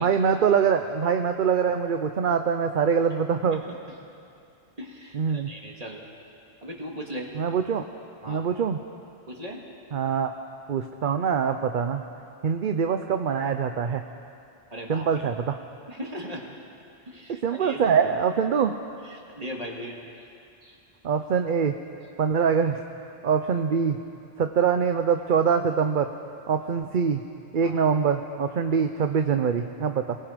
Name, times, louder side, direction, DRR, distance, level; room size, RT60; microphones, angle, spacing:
voice 1, 0.0-3.6 5.1-5.5 7.3-7.8 8.3-8.8 9.9-10.3 10.7-12.0 12.4-14.0 14.9-15.6 17.4-18.7 21.0-21.8 22.2-22.8 23.2-24.0 24.4-26.1 26.5-27.2 27.5-30.2, right 6 dB, 55° right, 7 dB, 0.8 m, -24 dB
voice 2, 4.8-6.1 6.6-7.3 8.2-8.5 9.3-9.6 14.7-15.2 15.9-16.5 17.1-17.9 19.0-20.0 20.6-20.8 27.6-27.8, equal, 35° right, 0 dB, 2.4 m, -38 dB
27.5 x 18.5 x 5.2 m, 2.5 s
omnidirectional pair, 1.1 m